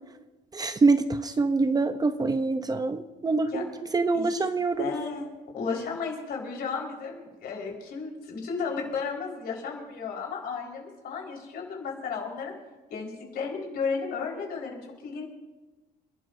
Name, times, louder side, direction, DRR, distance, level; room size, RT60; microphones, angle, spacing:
voice 1, 0.5-3.7 3.9-4.9, right 3 dB, 25° right, 10 dB, 0.7 m, -25 dB
voice 2, 4.1-4.5 4.8-5.3 5.5-12.5 12.9-15.2, left 5 dB, 65° left, -1 dB, 4.7 m, -33 dB
30.0 x 12.5 x 2.7 m, 1.2 s
cardioid pair, 110°, 17 cm